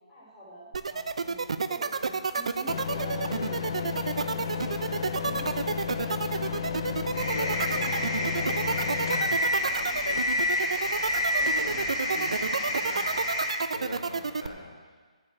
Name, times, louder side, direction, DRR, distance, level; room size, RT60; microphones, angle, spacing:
voice 1, 0.1-1.4 1.7-3.6 4.0-6.5, equal, 5° left, -12 dB, 3.6 m, -46 dB
sound 1, 0.7-14.5, right 5 dB, 60° right, 0.6 m, -30 dB
sound 2, 2.7-11.9, left 3 dB, 40° left, 0.6 m, -31 dB
sound 3, 7.1-13.5, left 1 dB, 20° left, 2.3 m, -31 dB
voice 2, 7.3-10.5 11.4-13.4 13.7-14.7, left 1 dB, 80° left, -1 dB, 3.8 m, -42 dB
8.7 x 8.5 x 8.2 m, 1.5 s
hypercardioid pair, 175°, 4 cm